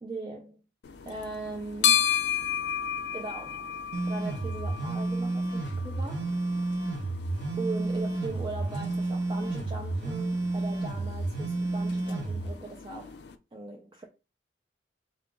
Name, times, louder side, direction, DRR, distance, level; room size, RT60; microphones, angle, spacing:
voice 1, 0.0-0.6 1.1-2.1 3.1-3.7 4.1-6.3 7.6-13.2 13.5-14.1, right 3 dB, 25° right, 0.4 m, -39 dB
sound 1, 0.8-13.4, left 9 dB, 70° left, 0.4 m, -34 dB
sound 2, 3.9-12.5, right 2 dB, 85° right, 0.8 m, -31 dB
3.7 x 2.3 x 3.7 m
head